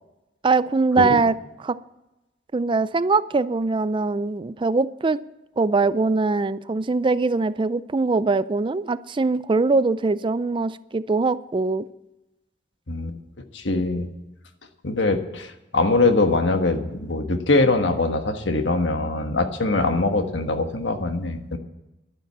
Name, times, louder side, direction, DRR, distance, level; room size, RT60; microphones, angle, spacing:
voice 1, 0.4-1.3 1.6-1.8 2.5-5.2 5.6-11.8, right 3 dB, 25° right, 16 dB, 0.4 m, -22 dB
voice 2, 12.9-14.1 14.8-21.6, left 2 dB, 80° left, 7 dB, 1.4 m, -23 dB
11.5 x 10.0 x 7.3 m, 0.97 s
head